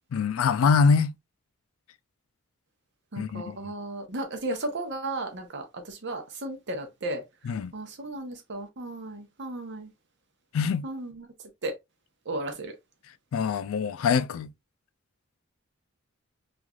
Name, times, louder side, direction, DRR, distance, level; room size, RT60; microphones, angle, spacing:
voice 1, 0.1-1.1 3.2-3.7 7.4-7.7 10.5-10.9 13.3-14.5, left 5 dB, 75° left, 0.3 m, -24 dB
voice 2, 3.1-9.9 10.8-11.3 11.6-11.7 12.3-12.7, right 2 dB, 55° right, 0.8 m, -35 dB
3.1 x 2.5 x 2.3 m
head